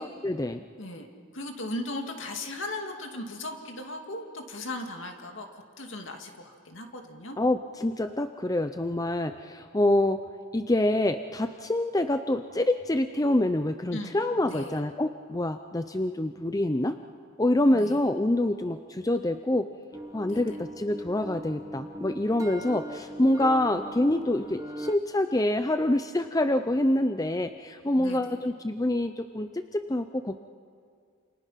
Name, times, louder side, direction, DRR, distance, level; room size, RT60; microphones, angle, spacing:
voice 1, 0.0-0.6 7.4-10.2 10.5-17.0 17.4-19.7 20.1-30.4, left 1 dB, 15° left, 9 dB, 0.6 m, -26 dB
voice 2, 0.8-7.4 13.9-14.8 17.7-18.0 20.3-20.6 28.0-28.4, left 1 dB, 65° left, 3 dB, 2.5 m, -38 dB
sound 1, 19.9-25.0, right 1 dB, 15° right, 1.3 m, -40 dB
28.5 x 28.5 x 5.8 m, 2.2 s
head